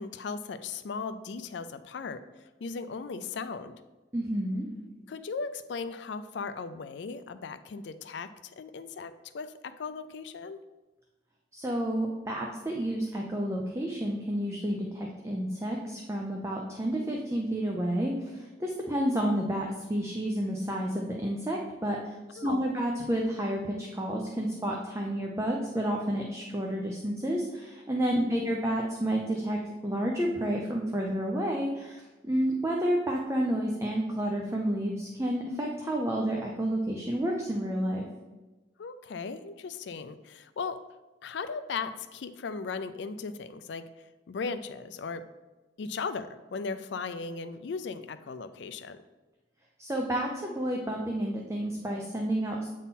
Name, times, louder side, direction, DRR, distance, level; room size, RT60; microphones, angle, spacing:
voice 1, 0.0-3.7 5.1-10.6 22.3-22.7 28.1-28.5 38.8-40.8 41.2-43.9 44.3-45.3 45.8-49.0, left 4 dB, 70° left, 12 dB, 0.4 m, -37 dB
voice 2, 4.1-4.7 11.5-22.1 22.4-38.0 49.8-52.7, right 1 dB, 15° right, 0 dB, 0.6 m, -30 dB
8.2 x 3.7 x 4.1 m, 1.1 s
head